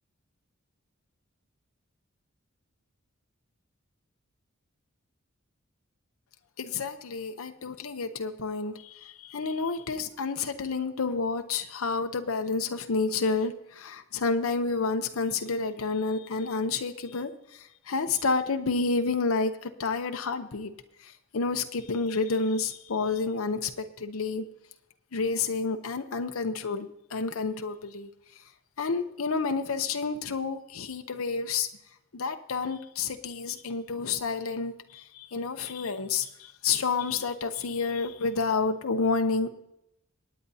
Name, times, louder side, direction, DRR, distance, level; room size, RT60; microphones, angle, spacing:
voice 1, 6.6-20.7 21.0-24.4 25.1-28.1 28.8-31.7 32.1-39.5, left 4 dB, 85° left, 6 dB, 0.7 m, -30 dB
26.0 x 9.3 x 2.8 m, 0.83 s
head